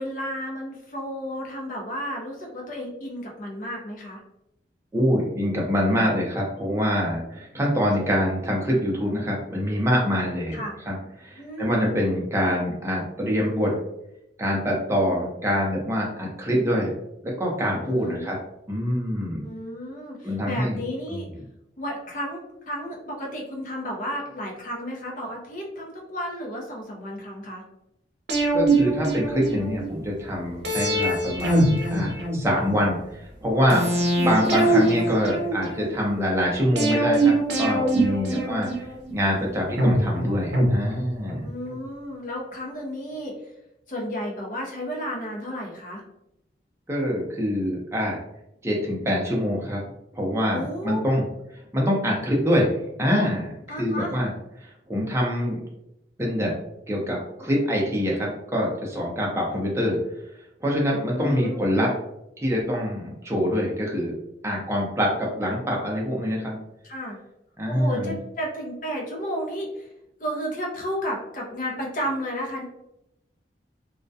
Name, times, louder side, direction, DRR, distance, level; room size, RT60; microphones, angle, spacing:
voice 1, 0.0-4.2 10.5-10.7 11.4-11.8 17.8-18.3 19.4-21.3 21.8-22.4 22.7-27.6 34.2-34.5 38.3-38.6 41.4-43.3 43.9-46.0 50.5-51.0 53.7-54.1 59.2-59.6 61.1-61.6 66.8-67.2 67.7-69.9 70.2-72.7, equal, 45° left, -1 dB, 0.6 m, -32 dB
voice 2, 4.9-10.6 10.9-13.8 14.4-16.9 17.2-18.4 18.7-19.4 20.2-20.8 21.1-21.3 28.5-33.8 34.2-38.7 39.1-41.5 46.9-48.2 48.6-49.8 50.1-51.2 51.7-52.7 53.0-53.5 53.8-54.3 54.6-55.6 56.2-56.6 56.9-60.0 60.6-61.9 62.4-64.1 64.4-66.6 67.6-68.2, equal, 15° right, -3 dB, 0.5 m, -25 dB
sound 1, 28.3-29.9 30.6-32.8 33.7-35.9 36.8-39.1 39.8-41.4 41.7-41.8, right 2 dB, 75° right, 0.6 m, -23 dB
2.3 x 2.1 x 2.6 m, 0.85 s
head